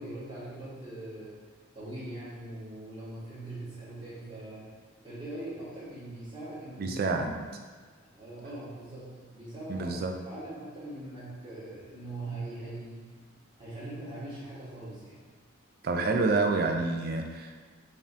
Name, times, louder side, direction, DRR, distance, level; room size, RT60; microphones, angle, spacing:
voice 1, 0.0-1.3 1.7-4.7 5.0-7.5 8.1-9.9 10.2-13.1 13.6-15.2 15.9-16.0, right 1 dB, 25° right, -10 dB, 1.3 m, -41 dB
voice 2, 6.8-7.3 9.7-10.1 15.8-17.5, right 3 dB, 50° right, 4 dB, 0.3 m, -28 dB
5.1 x 2.4 x 2.6 m, 1.4 s
head